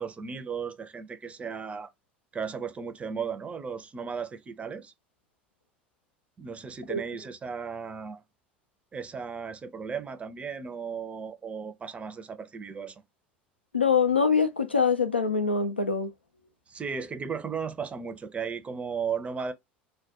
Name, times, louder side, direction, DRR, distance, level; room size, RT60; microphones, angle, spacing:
voice 1, 0.0-1.9 2.3-4.9 6.4-8.2 8.9-13.0 16.7-19.5, right 6 dB, 20° right, 0.5 m, -35 dB
voice 2, 13.7-16.1, left 5 dB, 90° left, 0.4 m, -24 dB
2.2 x 2.1 x 2.8 m
figure-of-eight pair, 70°, 6 cm